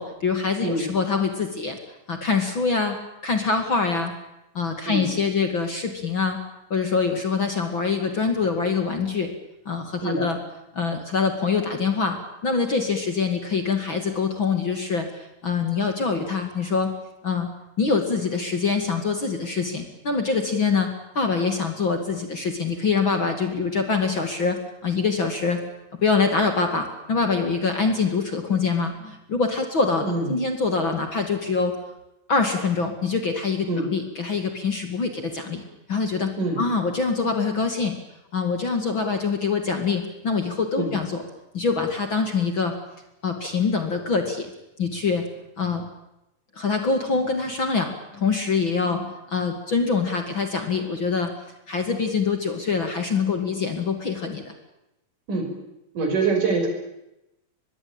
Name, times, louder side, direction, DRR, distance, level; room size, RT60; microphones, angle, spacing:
voice 1, 0.0-1.8 2.1-4.1 4.5-6.4 6.7-9.3 9.7-10.4 10.7-16.9 17.2-17.5 17.8-25.6 26.0-31.8 32.3-35.6 35.9-38.0 38.3-41.2 41.5-42.7 43.2-44.5 44.8-45.2 45.6-45.8 46.6-51.3 51.7-54.5, left 4 dB, 35° left, 5 dB, 2.8 m, -24 dB
voice 2, 30.0-30.4 33.7-33.9 36.4-36.6 40.8-40.9 55.3-55.5 55.9-56.7, right 3 dB, 60° right, 4 dB, 7.3 m, -24 dB
24.5 x 21.5 x 8.9 m, 0.90 s
omnidirectional pair, 4.1 m